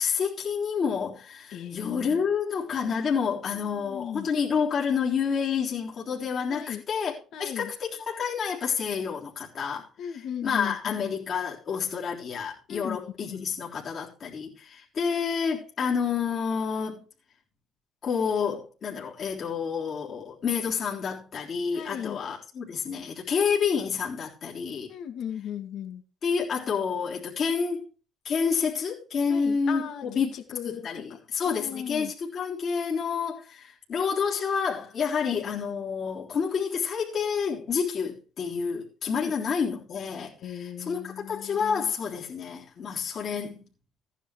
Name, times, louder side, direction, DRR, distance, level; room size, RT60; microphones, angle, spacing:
voice 1, 0.0-7.1 7.4-17.0 18.0-24.9 26.2-27.9 28.2-30.3 30.6-43.7, left 6 dB, 45° left, 3.6 m, -29 dB
voice 2, 1.5-2.2 3.5-4.3 6.5-6.8 7.3-7.7 10.0-10.9 12.7-13.4 21.7-22.2 24.9-26.0 29.3-30.9 31.4-32.1 39.1-39.3 40.4-41.9, left 9 dB, 60° left, 2.2 m, -37 dB
15.5 x 10.0 x 3.3 m
cardioid pair, 135°, 0 cm